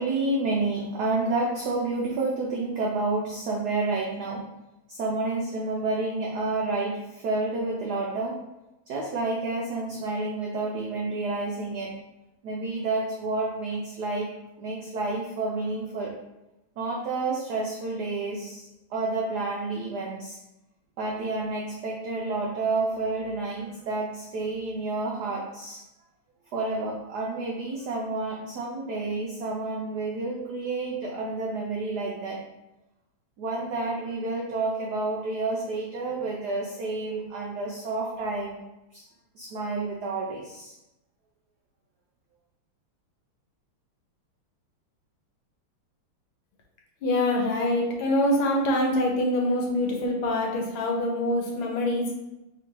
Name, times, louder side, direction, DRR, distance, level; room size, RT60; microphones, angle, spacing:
voice 1, 0.0-4.5 4.9-8.4 8.9-12.0 12.4-14.3 14.6-16.2 16.8-20.4 21.0-25.8 26.5-32.4 33.4-38.6 38.9-39.0 39.4-40.8, right 3 dB, 85° right, -2 dB, 0.8 m, -30 dB
voice 2, 47.0-52.1, left 1 dB, 75° left, 0 dB, 1.5 m, -25 dB
3.6 x 2.5 x 4.4 m, 0.95 s
omnidirectional pair, 2.4 m